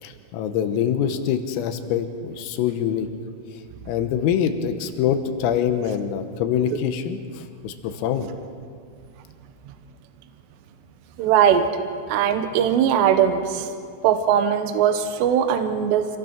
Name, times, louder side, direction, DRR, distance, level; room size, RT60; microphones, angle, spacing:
voice 1, 0.0-3.1 3.9-8.3, left 9 dB, 85° left, 7 dB, 3.8 m, -24 dB
voice 2, 11.2-11.7 12.1-13.7 14.0-16.1, right 9 dB, 75° right, 7 dB, 2.7 m, -20 dB
26.0 x 18.5 x 6.0 m, 2.2 s
omnidirectional pair, 5.9 m